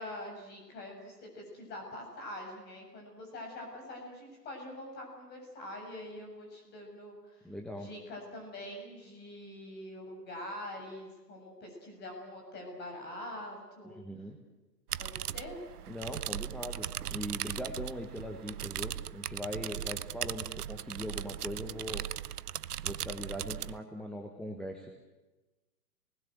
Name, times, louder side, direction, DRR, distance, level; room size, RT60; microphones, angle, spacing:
voice 1, 0.0-7.5 7.8-14.0 15.0-15.6, left 1 dB, 20° left, 2 dB, 7.5 m, -44 dB
voice 2, 7.4-7.9 13.9-14.4 15.9-22.0 22.8-24.9, equal, ahead, 1 dB, 1.2 m, -40 dB
sound 1, 14.9-23.8, right 11 dB, 65° right, 0.7 m, -38 dB
28.5 x 20.0 x 7.9 m, 1.1 s
figure-of-eight pair, 130°, 49 cm